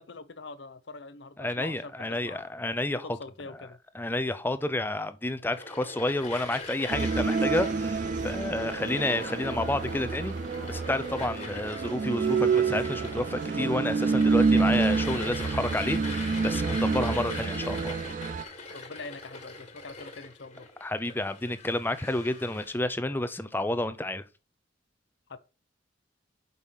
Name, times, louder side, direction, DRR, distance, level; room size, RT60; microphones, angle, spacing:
voice 1, 0.0-2.5 2.9-3.8 18.7-20.7 25.3-25.4, left 3 dB, 65° left, 0.7 m, -44 dB
voice 2, 1.4-3.1 3.9-10.3 10.7-17.9 20.8-24.2, left 1 dB, 10° left, 0.5 m, -30 dB
sound 1, 5.5-22.8, left 3 dB, 35° left, 1.7 m, -42 dB
sound 2, 6.9-18.4, right 4 dB, 40° right, 0.4 m, -28 dB
sound 3, 7.2-17.0, right 3 dB, 60° right, 0.9 m, -46 dB
5.7 x 5.4 x 6.5 m
head